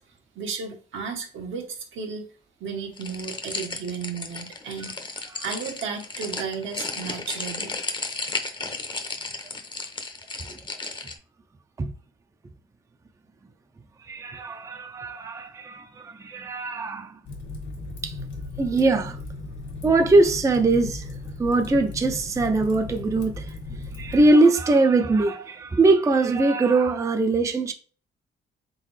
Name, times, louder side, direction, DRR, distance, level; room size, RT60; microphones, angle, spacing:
voice 1, 0.3-2.2 2.6-4.9 5.4-7.7, right 5 dB, 75° right, 1.1 m, -33 dB
sound 1, 3.0-11.2, left 3 dB, 25° left, 0.7 m, -34 dB
voice 2, 14.0-17.2 18.0-18.2 18.6-19.2 19.8-23.5 23.9-27.7, right 2 dB, 15° right, 0.4 m, -21 dB
Fire, 17.2-24.3, left 2 dB, 70° left, 1.7 m, -36 dB
3.8 x 3.5 x 3.2 m
cardioid pair, 90°, 20 cm